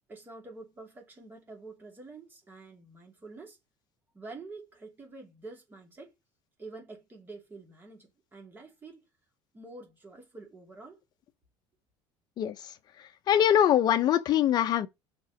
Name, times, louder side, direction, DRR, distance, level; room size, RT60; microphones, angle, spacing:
voice 1, 0.1-3.6 4.1-6.1 6.6-9.0 9.5-11.0, right 3 dB, 20° right, 2.7 m, -47 dB
voice 2, 12.4-12.7 13.0-14.9, left 10 dB, 40° left, 0.8 m, -24 dB
5.9 x 4.6 x 5.2 m
cardioid pair, 155°, 11 cm